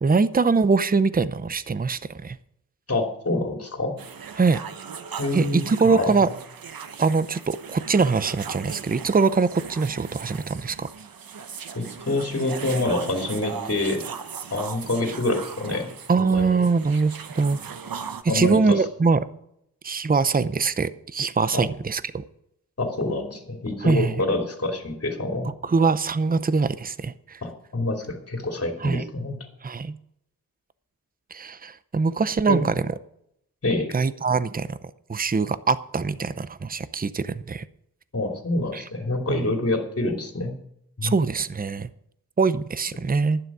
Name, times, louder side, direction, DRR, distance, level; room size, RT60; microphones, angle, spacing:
voice 1, 0.0-2.4 4.4-4.6 5.3-6.3 7.0-10.9 16.1-17.6 18.2-19.3 19.8-22.2 23.8-24.1 25.6-27.4 28.8-29.0 29.6-30.0 31.3-32.9 33.9-34.8 35.1-37.6 38.7-38.8 39.3-39.5 41.0-41.9 42.4-43.4, right 4 dB, 25° right, 15 dB, 0.6 m, -23 dB
voice 2, 2.9-4.0 5.2-6.1 11.7-14.1 14.5-15.9 16.2-16.6 18.3-18.8 21.5-21.6 22.8-25.5 27.4-29.4 32.5-32.6 33.6-33.9 38.1-40.6 41.0-41.1, left 2 dB, 40° left, 3 dB, 2.9 m, -26 dB
sound 1, 4.0-18.2, right 6 dB, 75° right, 1.0 m, -38 dB
11.5 x 9.8 x 6.2 m, 0.73 s
wide cardioid pair, 90°, 35 cm